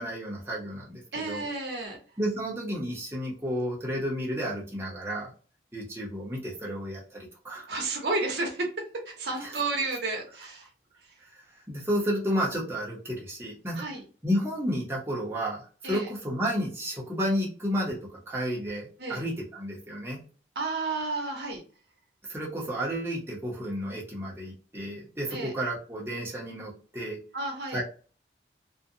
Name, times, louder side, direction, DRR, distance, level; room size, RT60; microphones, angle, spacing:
voice 1, 0.0-1.4 2.2-5.3 5.7-7.7 9.4-9.5 11.7-13.9 14.2-18.0 18.3-20.2 22.3-27.2 27.7-27.8, equal, 15° right, -5 dB, 0.7 m, -31 dB
voice 2, 1.1-2.0 7.7-8.7 9.1-10.7 13.7-14.0 15.8-16.1 19.0-19.2 20.6-21.6 25.3-25.5 27.3-27.8, right 3 dB, 70° right, 1 dB, 0.8 m, -31 dB
2.5 x 2.2 x 2.6 m, 0.38 s
head